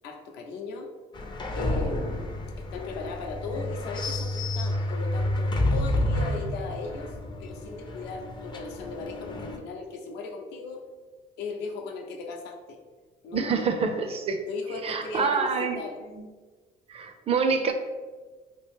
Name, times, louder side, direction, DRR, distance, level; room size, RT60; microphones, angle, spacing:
voice 1, 0.0-0.9 1.5-2.2 2.7-7.1 7.4-10.8 11.4-12.8 13.2-13.7 14.5-16.0, left 3 dB, 80° left, 2 dB, 0.6 m, -37 dB
sound 1, 1.1-9.6, left 1 dB, 25° left, 0.4 m, -30 dB
voice 2, 13.3-14.4 14.8-15.8 16.2-16.3 16.9-17.7, right 5 dB, 35° right, 7 dB, 0.4 m, -26 dB
2.9 x 2.6 x 3.4 m, 1.3 s
cardioid pair, 110°, 17 cm